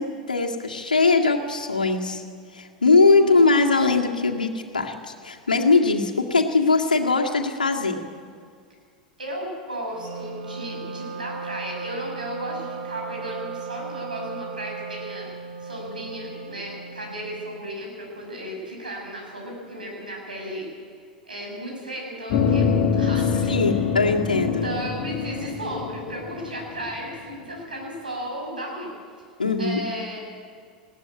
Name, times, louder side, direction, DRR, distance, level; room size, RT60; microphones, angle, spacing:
voice 1, 0.0-2.2 2.5-8.0 23.5-24.7 29.4-29.8, left 3 dB, 80° left, 2 dB, 2.0 m, -21 dB
voice 2, 9.2-15.3 15.6-20.7 21.0-23.8 24.4-28.9 29.6-30.2, right 1 dB, 80° right, 0 dB, 6.8 m, -34 dB
Wind instrument woodwind instrument, 9.9-17.8, right 5 dB, 50° right, 3.1 m, -36 dB
sound 1, 22.3-27.2, left 6 dB, 45° left, 2.1 m, -25 dB
20.5 x 17.0 x 8.4 m, 2.1 s
figure-of-eight pair, 85°, 5 cm